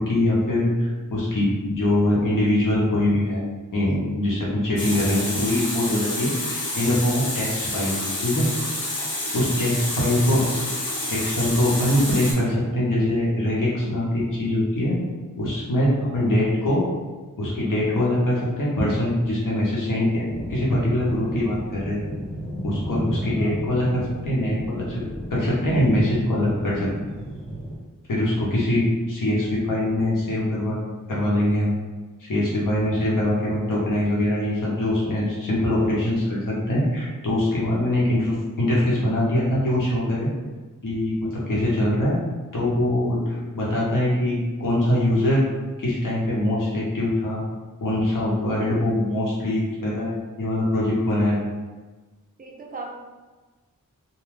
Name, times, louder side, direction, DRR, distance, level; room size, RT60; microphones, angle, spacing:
voice 1, 0.0-3.4 3.7-7.9 8.2-8.5 9.3-10.4 11.1-15.0 15.4-16.8 17.4-20.2 20.5-22.2 22.6-25.0 25.3-26.9 28.1-30.8 31.1-31.7 32.2-40.3 40.8-42.1 42.5-45.4 45.8-47.4 47.8-51.4, left 1 dB, 70° left, -6 dB, 0.8 m, -23 dB
Water tap faucet, 4.8-12.3, left 1 dB, 50° left, 1.1 m, -29 dB
voice 2, 9.8-10.3 16.0-16.3 23.2-23.6 52.4-52.9, right 3 dB, 25° right, -1 dB, 0.5 m, -39 dB
sound 1, 20.3-27.8, equal, 15° left, 0.7 m, -33 dB
2.3 x 2.2 x 3.2 m, 1.3 s
wide cardioid pair, 105°, 33 cm